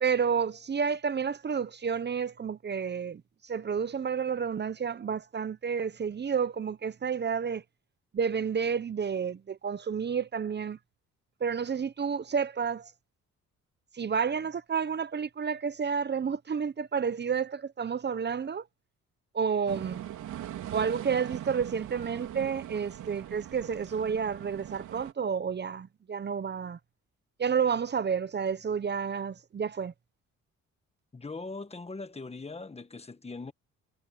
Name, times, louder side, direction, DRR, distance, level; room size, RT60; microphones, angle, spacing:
voice 1, 0.0-7.6 8.1-10.8 11.4-12.9 13.9-18.6 19.3-20.0 20.7-26.8 27.4-29.9, right 6 dB, 35° right, 0.9 m, -30 dB
sound 1, 19.7-25.1, right 12 dB, 75° right, 3.8 m, -41 dB
voice 2, 31.1-33.5, left 3 dB, 20° left, 1.5 m, -40 dB
cardioid pair, 90°, 30 cm